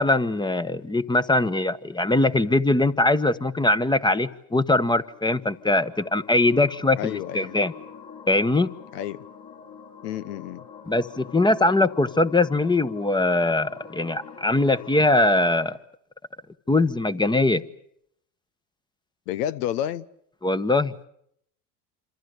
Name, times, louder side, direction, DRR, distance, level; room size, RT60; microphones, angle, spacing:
voice 1, 0.0-7.7 8.3-8.7 10.9-15.8 16.7-17.6 20.4-20.9, left 2 dB, 10° left, 1.1 m, -21 dB
sound 1, 4.9-15.6, left 6 dB, 50° left, 7.1 m, -45 dB
voice 2, 7.0-7.6 8.9-9.3 10.0-10.6 19.3-20.1, left 11 dB, 80° left, 1.0 m, -30 dB
27.0 x 26.5 x 6.6 m
supercardioid pair, 95°, 46 cm